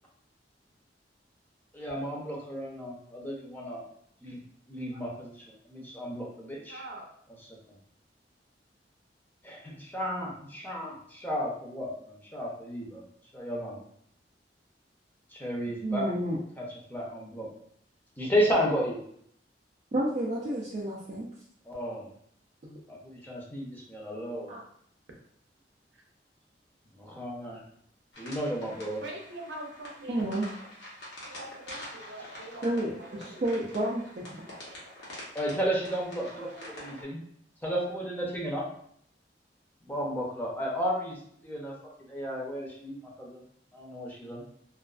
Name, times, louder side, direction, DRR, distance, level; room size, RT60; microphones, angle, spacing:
voice 1, 1.7-3.8 4.2-4.4 4.7-6.8 9.4-13.0 13.3-13.8 15.3-16.1 16.6-16.7 16.9-17.5 18.2-19.0 21.6-22.1 22.9-24.5 26.9-27.6 28.2-29.0 35.3-36.5 36.8-37.2 37.6-38.6 39.8-41.2 41.4-41.7 42.1-43.4 43.7-44.4, equal, 10° left, -3 dB, 0.6 m, -33 dB
voice 2, 6.7-7.1 25.9-26.0 29.0-30.4 31.2-33.7 36.4-36.5, right 1 dB, 85° right, 0 dB, 0.6 m, -44 dB
voice 3, 15.8-16.4 19.9-21.3 22.6-22.8 24.5-24.6 30.1-30.5 32.6-34.5, right 1 dB, 40° right, -5 dB, 0.4 m, -31 dB
sound 1, 28.1-37.0, left 1 dB, 80° left, 0.9 m, -46 dB
2.4 x 2.3 x 2.3 m, 0.66 s
head